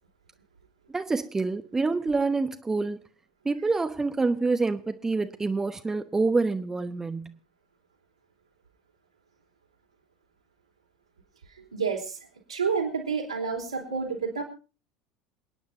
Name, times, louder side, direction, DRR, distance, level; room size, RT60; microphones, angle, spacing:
voice 1, 0.9-3.0 3.4-7.4, right 3 dB, 15° right, 0.9 m, -27 dB
voice 2, 11.5-14.4, right 5 dB, 80° right, 3.7 m, -30 dB
28.0 x 9.9 x 2.7 m
figure-of-eight pair, 70°, 3 cm